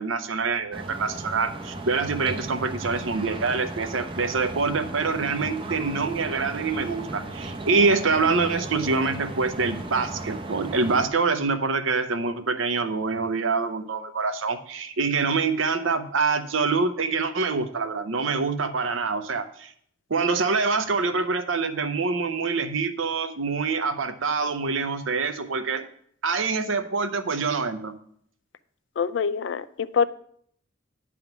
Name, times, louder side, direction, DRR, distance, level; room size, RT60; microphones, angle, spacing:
voice 1, 0.0-19.7 20.1-25.8 26.2-27.9, right 4 dB, 75° right, 8 dB, 0.7 m, -25 dB
sound 1, 0.7-11.1, right 2 dB, 25° right, 0.6 m, -36 dB
voice 2, 29.0-30.1, left 6 dB, 60° left, 15 dB, 0.4 m, -25 dB
9.3 x 3.6 x 5.8 m, 0.63 s
head